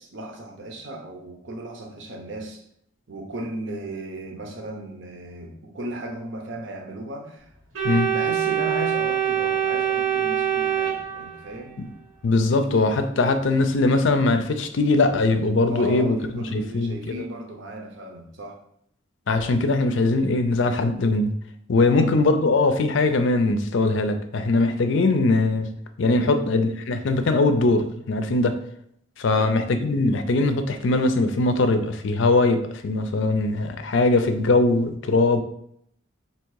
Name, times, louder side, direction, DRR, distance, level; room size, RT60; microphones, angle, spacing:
voice 1, 0.0-2.6 3.1-7.5 8.1-11.8 15.7-18.6 21.8-22.2 26.1-26.5 29.3-29.6, right 1 dB, 60° right, 0.8 m, -35 dB
Organ, 7.7-11.7, right 9 dB, 85° right, 1.3 m, -24 dB
voice 2, 12.2-17.2 19.3-21.3 21.7-25.7 26.0-28.6 29.2-35.4, left 2 dB, 60° left, 0.4 m, -21 dB
3.5 x 2.8 x 4.7 m
head